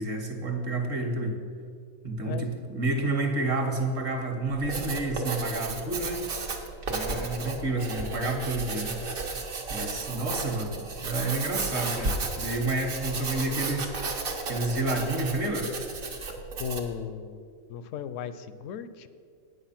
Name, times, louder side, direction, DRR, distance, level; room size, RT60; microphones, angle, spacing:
voice 1, 0.0-1.4 2.0-2.5 2.7-6.2 6.9-9.0 9.7-13.9 14.5-15.7, right 2 dB, 50° right, 3 dB, 1.5 m, -29 dB
voice 2, 2.2-2.7 3.1-3.5 16.6-17.4 17.7-19.1, left 7 dB, 70° left, 13 dB, 0.8 m, -37 dB
Writing, 4.5-17.0, right 3 dB, 70° right, 1.5 m, -33 dB
9.5 x 8.0 x 5.8 m, 2.2 s
omnidirectional pair, 1.5 m